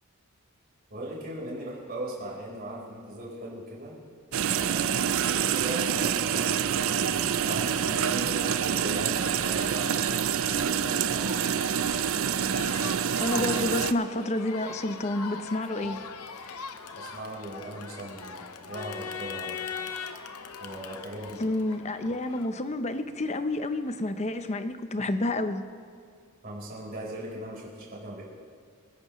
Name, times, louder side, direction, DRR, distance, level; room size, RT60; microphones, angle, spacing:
voice 1, 0.9-3.9 4.5-10.0 10.5-11.5 17.0-19.6 20.6-21.4 26.4-28.2, right 1 dB, 40° right, -4 dB, 4.2 m, -39 dB
sound 1, 4.3-13.9, right 8 dB, 60° right, 0.5 m, -27 dB
Crowd, 5.3-22.5, left 5 dB, 85° left, 0.9 m, -42 dB
voice 2, 13.2-16.0 21.4-25.6, left 2 dB, 30° left, 9 dB, 0.7 m, -29 dB
27.0 x 11.0 x 3.1 m, 2.2 s
head